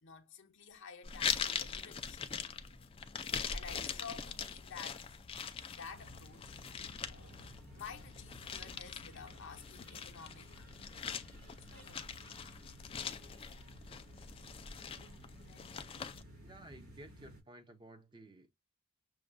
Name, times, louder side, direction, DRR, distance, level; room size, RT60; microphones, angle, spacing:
voice 1, 0.0-2.2 3.5-5.0 5.7-6.6 7.7-10.7 11.6-12.1 15.4-15.7, left 6 dB, 55° left, 0.7 m, -51 dB
sound 1, 0.7-7.8, left 1 dB, 80° right, 3.3 m, -62 dB
sound 2, 1.0-16.2, left 7 dB, 25° left, 0.4 m, -42 dB
sound 3, 5.9-17.4, equal, 65° right, 3.1 m, -56 dB
voice 2, 16.4-18.5, right 1 dB, 20° right, 0.6 m, -54 dB
6.2 x 2.2 x 2.5 m
head